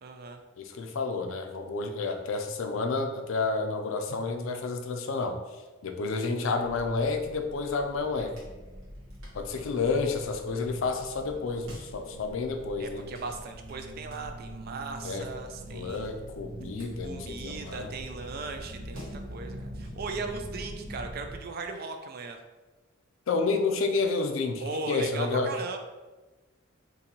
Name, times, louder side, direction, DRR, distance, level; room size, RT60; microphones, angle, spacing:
voice 1, 0.0-0.4 9.6-9.7 12.8-16.1 17.0-22.4 24.6-25.8, right 3 dB, 45° right, 5 dB, 0.4 m, -38 dB
voice 2, 0.6-5.4 5.8-8.3 9.3-13.0 15.0-15.3 15.7-17.9 23.3-25.5, left 4 dB, 70° left, 5 dB, 0.4 m, -30 dB
sound 1, 6.6-21.4, equal, 65° right, 1.1 m, -43 dB
3.9 x 2.6 x 2.9 m, 1.2 s
head